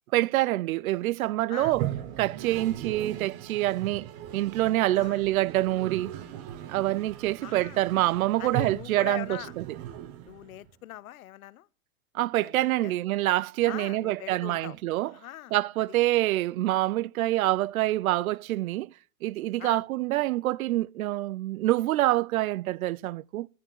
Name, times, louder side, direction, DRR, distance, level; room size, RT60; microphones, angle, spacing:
voice 1, 0.1-1.9 2.2-6.1 6.7-9.6 12.1-15.1 15.5-18.9 19.2-23.5, right 16 dB, 85° right, 0.5 m, -26 dB
Toilet flush, 1.6-10.7, right 12 dB, 20° right, 0.5 m, -38 dB
voice 2, 4.8-5.2 7.4-7.8 8.4-9.5 10.2-11.7 12.2-12.9 13.7-14.8 15.0-15.6 15.9-16.0 19.6-19.8, left 14 dB, 90° left, 0.7 m, -42 dB
10.5 x 6.7 x 9.0 m
supercardioid pair, 160°, 41 cm